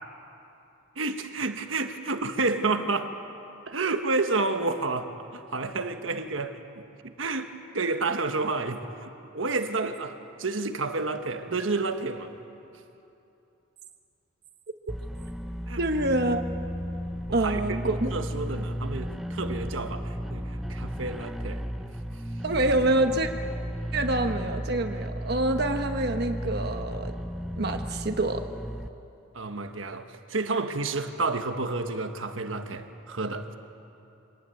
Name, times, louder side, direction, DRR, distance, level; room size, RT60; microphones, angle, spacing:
voice 1, 0.9-3.1 3.7-12.3 15.7-15.8 17.3-21.9 29.3-33.5, right 3 dB, 80° right, 7 dB, 1.3 m, -30 dB
sound 1, 14.9-28.9, equal, ahead, 0.5 m, -34 dB
voice 2, 15.8-16.4 17.3-18.1 22.4-23.3 23.9-27.1 27.6-28.4, right 2 dB, 55° right, 5 dB, 1.1 m, -26 dB
25.0 x 18.5 x 9.1 m, 2.7 s
head